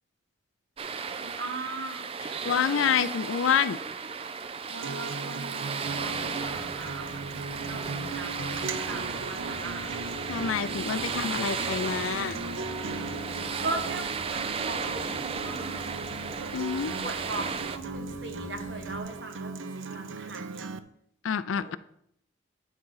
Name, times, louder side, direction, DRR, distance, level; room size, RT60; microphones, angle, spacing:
sound 1, 0.8-17.8, right 5 dB, 30° right, 0.4 m, -35 dB
voice 1, 1.2-2.1 4.7-7.2 7.5-9.9 13.6-15.9 16.3-16.5 17.0-20.7 21.5-21.8, right 2 dB, 65° right, 4 dB, 1.3 m, -39 dB
voice 2, 2.2-3.8 10.3-12.4 16.5-16.9 21.2-21.8, left 7 dB, 85° left, 15 dB, 0.4 m, -27 dB
Acoustic guitar, 4.8-20.8, right 3 dB, 80° right, 0.5 m, -39 dB
sound 2, 5.8-19.0, equal, 50° left, 1.3 m, -43 dB
10.0 x 3.9 x 5.6 m, 0.71 s
head